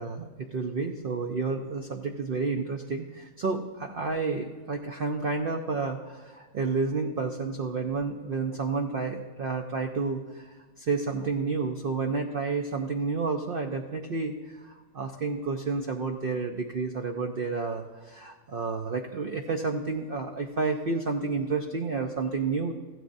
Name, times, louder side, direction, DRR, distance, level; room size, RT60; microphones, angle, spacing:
voice 1, 0.0-10.5 10.8-22.7, right 4 dB, 55° right, 3 dB, 0.6 m, -30 dB
15.5 x 12.5 x 2.6 m, 1.4 s
omnidirectional pair, 1.7 m